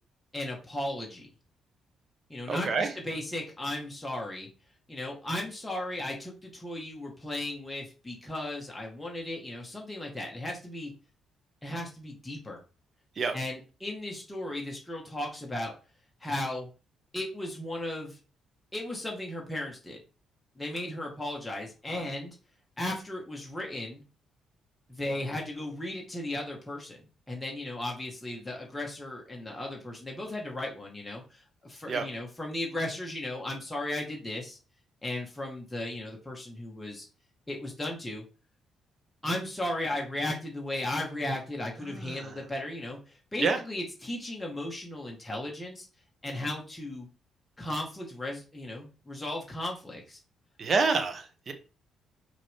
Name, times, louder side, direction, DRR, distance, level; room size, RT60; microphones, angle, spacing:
voice 1, 0.3-1.3 2.3-4.5 4.9-10.9 11.6-12.6 13.3-15.7 16.2-16.7 17.1-18.2 18.7-20.0 20.6-22.4 22.8-24.0 24.9-34.6 35.0-37.1 37.5-38.2 39.2-45.9 46.2-47.1 47.6-50.2, left 1 dB, 10° left, -1 dB, 2.0 m, -36 dB
voice 2, 2.5-2.9 13.2-13.4 31.9-32.1 41.8-42.3 43.4-43.6 50.6-51.5, right 4 dB, 45° right, 6 dB, 1.4 m, -28 dB
5.8 x 4.7 x 3.7 m, 0.34 s
cardioid pair, 90°, 0 cm